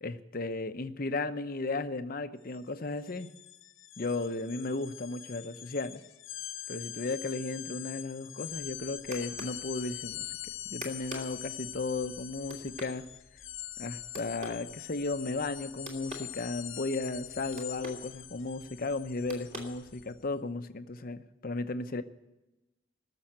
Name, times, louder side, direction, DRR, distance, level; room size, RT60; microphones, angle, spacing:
voice 1, 0.0-3.3 4.0-6.0 6.7-10.3 10.7-13.1 13.8-22.0, left 3 dB, 45° left, 10 dB, 0.8 m, -35 dB
sound 1, 2.4-2.6 2.9-20.1, left 12 dB, 75° left, 0.8 m, -44 dB
sound 2, 8.4-20.3, equal, 35° right, 2.9 m, -49 dB
19.0 x 7.1 x 8.9 m, 0.99 s
head